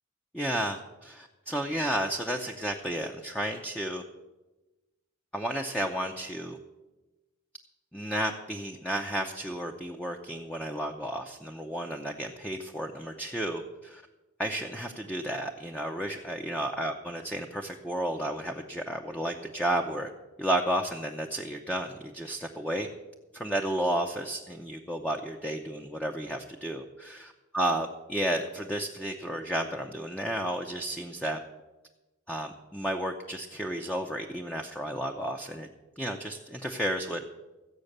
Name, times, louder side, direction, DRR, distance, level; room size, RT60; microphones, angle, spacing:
voice 1, 0.3-4.0 5.3-6.6 7.9-14.0 14.4-20.1 20.4-22.9 23.3-31.4 32.3-35.7 36.0-37.3, right 1 dB, 5° left, 2 dB, 0.7 m, -32 dB
15.0 x 8.1 x 6.6 m, 1.1 s
head